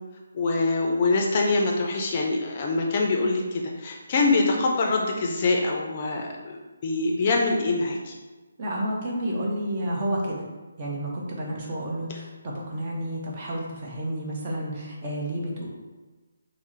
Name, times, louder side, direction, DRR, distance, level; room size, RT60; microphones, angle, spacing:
voice 1, 0.3-8.2, left 3 dB, 35° left, 0 dB, 0.5 m, -24 dB
voice 2, 8.6-10.4 10.8-15.7, right 1 dB, 35° right, -3 dB, 0.8 m, -30 dB
3.5 x 2.0 x 4.1 m, 1.2 s
figure-of-eight pair, 150°, 0 cm